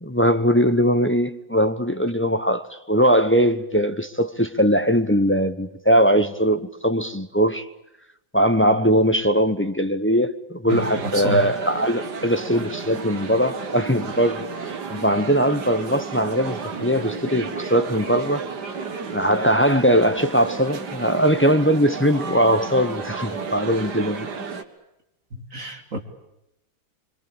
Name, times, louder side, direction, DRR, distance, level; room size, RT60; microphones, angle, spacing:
voice 1, 0.0-7.7 8.3-14.5 14.9-18.5 19.1-24.3, equal, 15° left, 0.4 m, -20 dB
voice 2, 10.7-11.4 25.3-26.0, equal, 40° right, 3.3 m, -29 dB
sound 1, 10.7-24.6, right 5 dB, 55° right, 2.3 m, -32 dB
26.0 x 25.0 x 8.8 m
omnidirectional pair, 2.2 m